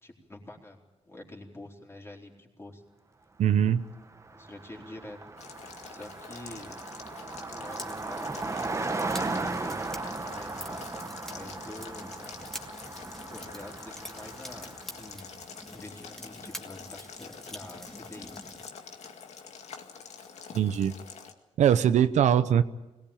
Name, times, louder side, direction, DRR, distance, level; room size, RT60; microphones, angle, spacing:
voice 1, 0.0-2.8 4.3-5.2 5.9-6.8 7.5-9.8 10.2-12.2 13.3-15.3 15.7-18.3, left 1 dB, 20° left, 0 dB, 4.2 m, -47 dB
voice 2, 3.4-3.8 20.5-20.9 21.6-22.6, right 9 dB, 85° right, 12 dB, 0.9 m, -22 dB
Car passing by, 3.8-3.9 4.1-15.1, right 3 dB, 25° right, 1.2 m, -37 dB
Boiling, 5.4-21.3, left 6 dB, 70° left, 2.1 m, -46 dB
sound 1, 7.7-18.7, equal, 5° left, 2.5 m, -46 dB
22.0 x 18.5 x 8.8 m, 1.1 s
cardioid pair, 100°, 12 cm